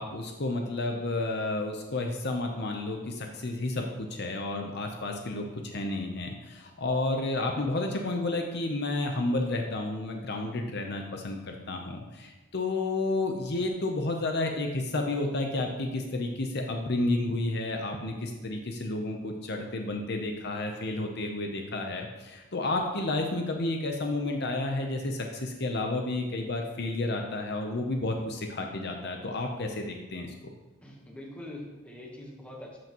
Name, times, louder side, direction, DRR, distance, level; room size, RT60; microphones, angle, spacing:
voice 1, 0.0-30.3, left 2 dB, 50° left, 3 dB, 0.7 m, -31 dB
voice 2, 30.8-32.8, left 1 dB, 5° left, -1 dB, 1.1 m, -43 dB
12.5 x 5.9 x 3.0 m, 1.2 s
head